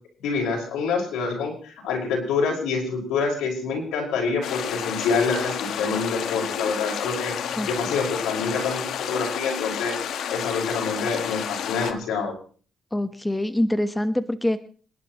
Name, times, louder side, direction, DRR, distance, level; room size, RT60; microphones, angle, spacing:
voice 1, 0.2-7.3 7.7-9.9 10.3-12.3, left 4 dB, 90° left, 0 dB, 5.6 m, -26 dB
sound 1, 4.4-11.9, left 8 dB, 75° left, 1.3 m, -30 dB
voice 2, 12.9-14.6, left 1 dB, 10° left, 10 dB, 1.2 m, -24 dB
27.0 x 11.0 x 3.1 m, 0.42 s
cardioid pair, 90°, 0 cm